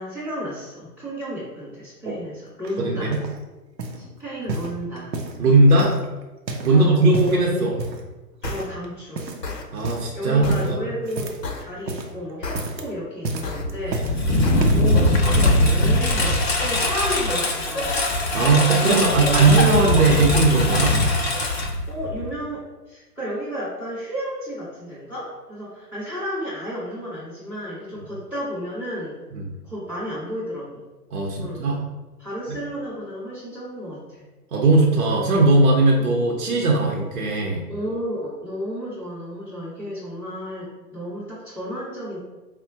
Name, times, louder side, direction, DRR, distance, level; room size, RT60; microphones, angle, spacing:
voice 1, 0.0-3.2 4.0-5.1 6.7-7.7 8.4-9.3 10.1-11.3 11.6-14.4 14.7-17.9 18.8-20.1 21.9-29.1 29.6-30.8 31.4-31.6 32.2-34.2 36.0-36.1 37.7-42.2, equal, 5° right, -15 dB, 0.6 m, -32 dB
sound 1, 2.6-3.4 3.8-4.1 4.5-5.4 5.8-6.8 7.0-7.4 7.8-8.1 8.4-8.9 9.2-9.5 9.8-10.1 10.5-11.5 11.8-12.2 12.5-12.9 13.2-14.2 14.6-14.9 15.6-15.7, right 2 dB, 90° right, 0.6 m, -31 dB
voice 2, 2.8-3.2 5.4-5.9 6.6-7.8 9.7-10.8 14.3-14.5 18.3-21.0 29.3-29.5 31.1-31.9 34.5-37.6, right 3 dB, 55° right, -1 dB, 0.7 m, -18 dB
sound 2, 8.4-8.6 9.4-9.6 10.4-10.6 11.4-11.6 12.4-12.6 13.4-13.6 14.4-14.6 15.4-15.6, left 4 dB, 75° left, 0.7 m, -31 dB
Engine, 13.6-22.3, left 1 dB, 40° left, 0.4 m, -21 dB
4.5 x 2.1 x 2.6 m, 1.1 s
figure-of-eight pair, 125°, 49 cm